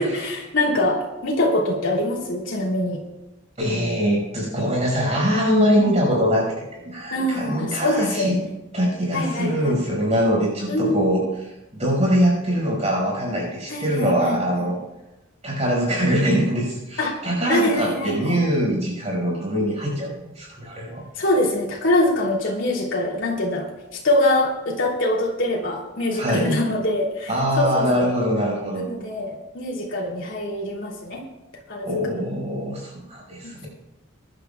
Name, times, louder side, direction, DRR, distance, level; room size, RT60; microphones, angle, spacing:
voice 1, 0.0-3.0 5.8-6.0 7.1-8.4 9.1-9.8 10.7-11.2 13.7-14.4 17.0-17.1 17.5-18.4 21.2-28.1 28.7-31.2 31.7-31.9 33.4-33.7, left 1 dB, 65° left, -2 dB, 3.2 m, -24 dB
voice 2, 3.6-8.4 8.7-11.2 11.8-14.8 15.4-21.0 26.1-26.5 27.3-28.9 31.8-33.7, equal, 30° right, -2 dB, 5.4 m, -23 dB
23.0 x 12.0 x 2.4 m, 0.99 s
head